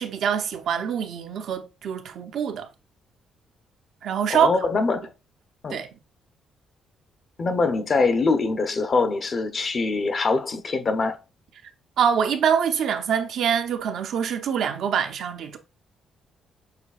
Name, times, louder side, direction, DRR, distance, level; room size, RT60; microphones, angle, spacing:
voice 1, 0.0-2.7 4.0-4.5 5.7-5.9 12.0-15.6, right 7 dB, 70° right, 0.6 m, -24 dB
voice 2, 4.3-5.1 5.6-5.8 7.4-11.2, left 3 dB, 45° left, 0.7 m, -23 dB
6.6 x 2.7 x 2.4 m
cardioid pair, 90°, 0 cm